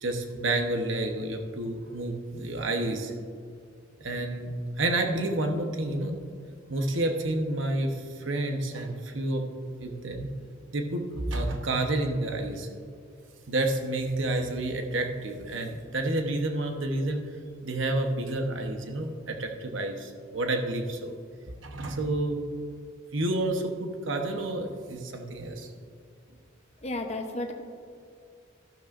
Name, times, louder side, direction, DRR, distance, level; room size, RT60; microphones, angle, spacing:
voice 1, 0.0-3.1 4.0-6.2 6.7-9.5 9.8-10.3 10.7-12.7 13.5-17.2 17.6-21.1 21.6-22.4 23.1-25.7, right 2 dB, 70° right, 4 dB, 1.0 m, -29 dB
voice 2, 26.8-27.5, left 2 dB, 35° left, 3 dB, 0.8 m, -32 dB
13.5 x 12.0 x 2.5 m, 2.3 s
head